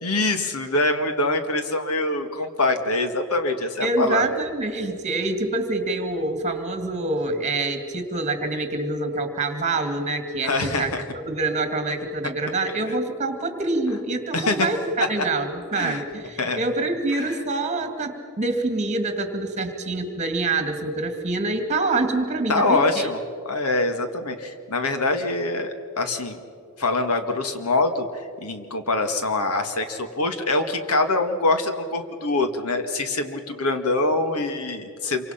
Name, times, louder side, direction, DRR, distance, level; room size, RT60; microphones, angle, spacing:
voice 1, 0.0-4.3 10.4-11.0 12.9-13.0 14.3-14.7 15.2-15.3 15.7-16.0 16.4-16.6 17.1-17.4 22.5-23.2 23.5-26.4 26.8-35.3, left 2 dB, 90° left, 7 dB, 1.9 m, -24 dB
voice 2, 3.8-14.8 15.1-23.1, right 2 dB, 30° right, 7 dB, 2.3 m, -26 dB
27.0 x 24.5 x 5.8 m, 2.3 s
head